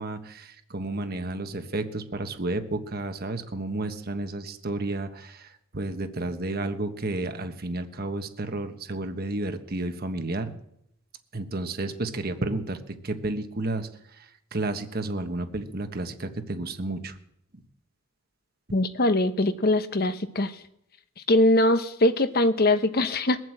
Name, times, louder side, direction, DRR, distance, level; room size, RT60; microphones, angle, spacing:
voice 1, 0.0-10.5 11.3-13.9 14.2-14.3 14.5-17.1, right 2 dB, 45° right, 8 dB, 1.3 m, -31 dB
voice 2, 18.7-20.6 21.3-23.4, left 1 dB, 45° left, 11 dB, 1.0 m, -22 dB
21.5 x 7.8 x 7.9 m, 0.78 s
head